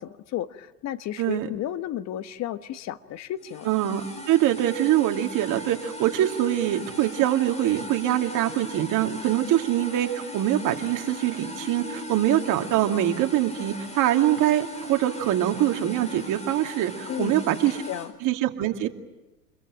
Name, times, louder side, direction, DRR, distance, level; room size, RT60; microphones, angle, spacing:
voice 1, 0.0-3.7 17.1-17.4 17.9-18.1, left 12 dB, 35° left, 12 dB, 1.3 m, -33 dB
sound 1, 3.4-18.1, left 2 dB, 15° left, 4.6 m, -39 dB
voice 2, 3.6-17.8 18.2-18.9, right 12 dB, 40° right, 4 dB, 2.5 m, -24 dB
28.0 x 22.0 x 9.0 m, 1.1 s
hypercardioid pair, 95°, 47 cm